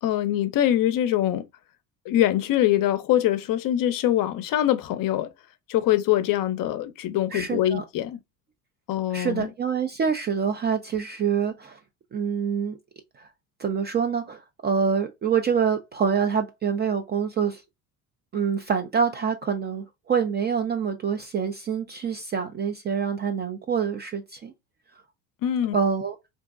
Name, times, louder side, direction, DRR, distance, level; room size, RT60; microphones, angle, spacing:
voice 1, 0.0-1.4 2.1-5.3 5.7-8.2 8.9-9.5 25.4-25.8, left 12 dB, 45° left, 0.6 m, -23 dB
voice 2, 7.3-7.8 9.1-11.8 12.1-12.8 13.2-13.3 13.6-17.6 18.3-24.5 25.7-26.2, right 6 dB, 25° right, 0.3 m, -26 dB
3.7 x 2.6 x 2.4 m
hypercardioid pair, 75°, 47 cm